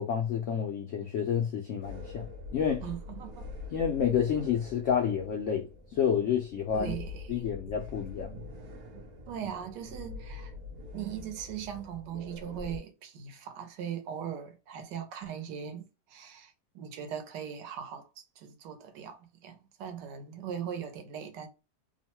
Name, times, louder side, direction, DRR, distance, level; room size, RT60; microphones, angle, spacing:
voice 1, 0.0-2.8 3.7-5.7 5.9-6.9 7.3-8.4, left 8 dB, 80° left, 0.6 m, -29 dB
sound 1, 1.8-12.8, left 3 dB, 70° right, 1.1 m, -44 dB
voice 2, 2.8-3.5 6.7-7.4 8.9-10.5 10.9-21.5, right 8 dB, 85° right, 1.3 m, -40 dB
3.0 x 2.1 x 2.9 m
omnidirectional pair, 1.8 m